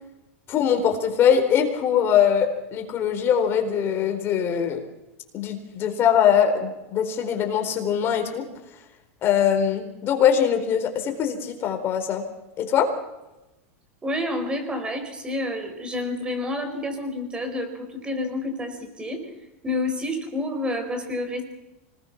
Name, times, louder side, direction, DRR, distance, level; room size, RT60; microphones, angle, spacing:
voice 1, 0.5-4.8 5.3-8.5 9.2-12.2 12.6-12.9, left 8 dB, 35° left, 5 dB, 4.3 m, -22 dB
voice 2, 14.0-19.3 19.6-21.4, left 1 dB, 15° right, 6 dB, 4.5 m, -29 dB
25.5 x 20.0 x 6.0 m, 0.99 s
supercardioid pair, 135°, 7 cm